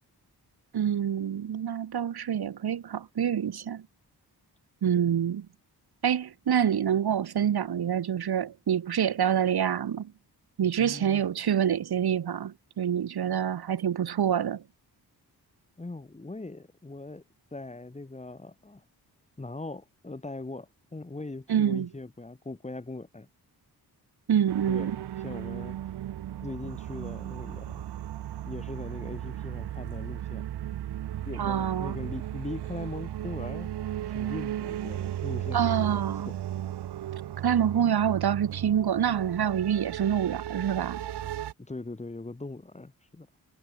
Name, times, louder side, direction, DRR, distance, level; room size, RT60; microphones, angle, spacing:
voice 1, 0.7-3.8 4.8-5.5 6.0-10.1 10.6-14.6 21.5-21.9 24.3-25.0 31.4-32.0 35.5-36.3 37.4-41.0, right 9 dB, 70° right, 1.6 m, -26 dB
voice 2, 10.8-11.2 15.8-17.2 17.5-18.8 19.4-23.3 24.7-25.8 26.4-27.8 28.5-30.5 31.2-33.7 34.1-36.0 41.6-43.3, left 2 dB, 15° left, 2.3 m, -40 dB
sound 1, 24.5-41.5, right 12 dB, 85° right, 0.8 m, -35 dB
wide cardioid pair, 160°, 39 cm